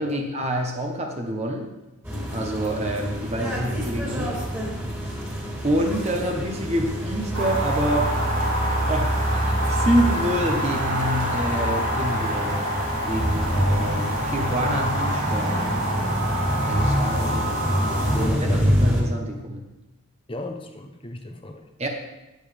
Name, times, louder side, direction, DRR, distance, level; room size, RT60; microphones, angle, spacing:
voice 1, 0.0-1.7 2.3-4.4 5.6-8.2 8.9-9.2 9.6-12.7 13.1-15.6 16.7-17.4 18.1-19.7 21.8-21.9, right 1 dB, 30° right, 1 dB, 1.2 m, -27 dB
sound 1, 2.0-19.0, equal, 10° right, 2.8 m, -26 dB
sound 2, 7.3-18.3, equal, 85° right, 3.1 m, -27 dB
voice 2, 17.1-17.4 18.1-18.7 20.3-21.6, left 1 dB, 25° left, 5 dB, 1.0 m, -36 dB
19.0 x 7.2 x 3.6 m, 1.0 s
head